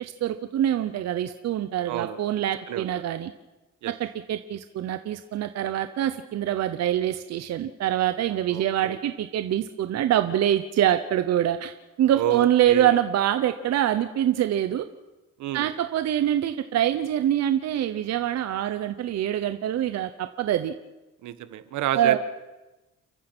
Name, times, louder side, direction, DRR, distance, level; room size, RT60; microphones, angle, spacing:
voice 1, 0.0-3.3 4.0-14.9 15.5-20.7 21.9-22.2, right 11 dB, 60° right, 10 dB, 1.0 m, -25 dB
voice 2, 1.9-2.2 2.7-2.9 3.8-3.9 8.5-9.0 12.1-12.9 15.4-15.7 21.2-22.2, right 11 dB, 80° right, 11 dB, 1.5 m, -29 dB
30.0 x 14.5 x 6.2 m, 1.1 s
cardioid pair, 135°, 29 cm